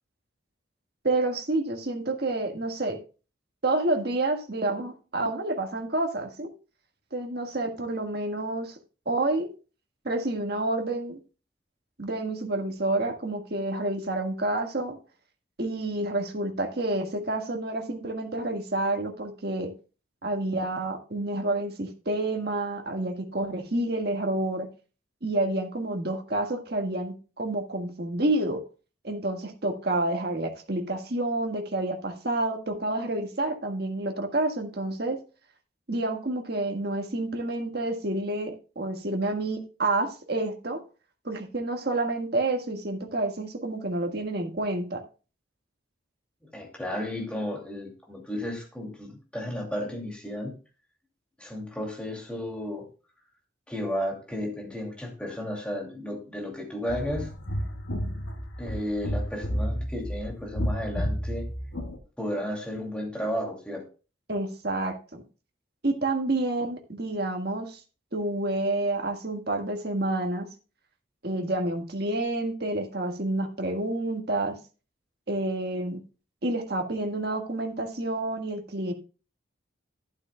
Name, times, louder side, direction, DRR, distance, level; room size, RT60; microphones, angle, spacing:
voice 1, 1.0-3.0 3.6-6.5 7.1-8.8 9.0-9.5 10.0-11.2 12.0-15.0 15.6-19.7 20.2-24.7 25.2-28.6 29.0-35.2 35.9-40.8 41.2-45.0 64.3-65.2 65.8-67.8 68.1-70.5 71.2-74.6 75.3-76.0 76.4-78.9, right 2 dB, 55° right, 1.6 m, -29 dB
voice 2, 46.4-50.5 51.4-52.9 53.7-57.3 58.6-61.5 62.2-63.8, equal, 5° left, 2.5 m, -33 dB
sound 1, 56.9-62.0, equal, 80° left, 1.5 m, -31 dB
12.0 x 11.5 x 2.2 m
head